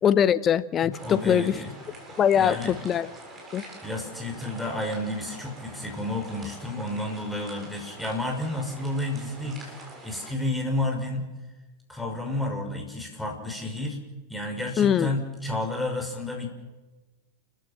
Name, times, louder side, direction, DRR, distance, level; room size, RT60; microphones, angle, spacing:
voice 1, 0.0-1.6 2.2-3.1 3.5-3.6 14.8-15.1, left 9 dB, 25° left, 17 dB, 0.8 m, -22 dB
voice 2, 0.9-1.7 2.3-2.7 3.8-11.3 11.9-14.0 14.3-16.5, left 1 dB, 5° left, 2 dB, 5.9 m, -31 dB
sound 1, 0.9-10.3, right 2 dB, 20° right, 7.8 m, -45 dB
29.5 x 15.0 x 7.6 m, 1.2 s
figure-of-eight pair, 90°, 0 cm